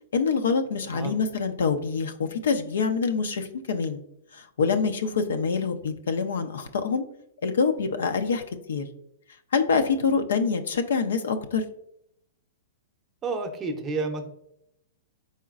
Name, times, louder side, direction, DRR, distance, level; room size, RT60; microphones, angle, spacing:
voice 1, 0.1-4.0 4.3-7.1 7.4-8.8 9.5-11.6, left 5 dB, 85° left, 8 dB, 0.5 m, -25 dB
voice 2, 13.2-14.3, right 3 dB, 20° right, 5 dB, 0.6 m, -30 dB
4.2 x 3.9 x 2.4 m, 0.75 s
hypercardioid pair, 145°, 0 cm